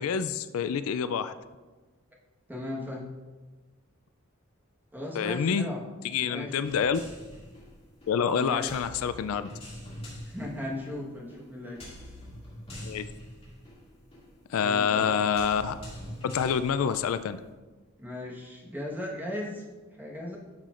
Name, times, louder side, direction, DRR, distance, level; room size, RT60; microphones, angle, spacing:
voice 1, 0.0-1.3 5.2-5.7 6.0-7.0 8.1-9.5 12.8-13.0 14.5-15.7 16.2-17.4, left 7 dB, 80° left, 12 dB, 0.3 m, -27 dB
voice 2, 2.5-3.1 4.9-5.8 6.2-6.5 8.4-8.7 10.2-11.9 14.6-15.1 18.0-19.6 19.9-20.4, left 1 dB, 10° right, -3 dB, 1.3 m, -37 dB
sound 1, 6.6-17.5, equal, 25° left, 2.2 m, -45 dB
12.0 x 5.8 x 2.5 m, 1.3 s
head